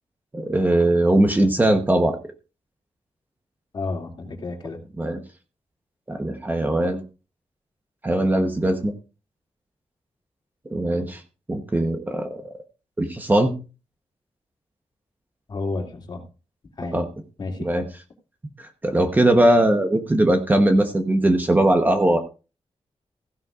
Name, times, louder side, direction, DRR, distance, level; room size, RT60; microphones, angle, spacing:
voice 1, 0.3-2.2 5.0-5.2 6.1-7.0 8.0-8.9 10.7-11.2 11.5-12.4 13.0-13.5 16.9-17.0 17.6-17.8 18.6-22.2, right 1 dB, 15° right, 5 dB, 1.0 m, -20 dB
voice 2, 3.7-4.8 15.5-16.2 16.8-17.0 17.4-17.7, left 3 dB, 40° left, 2 dB, 2.7 m, -31 dB
15.5 x 11.5 x 2.5 m, 0.33 s
wide cardioid pair, 180°, 11 cm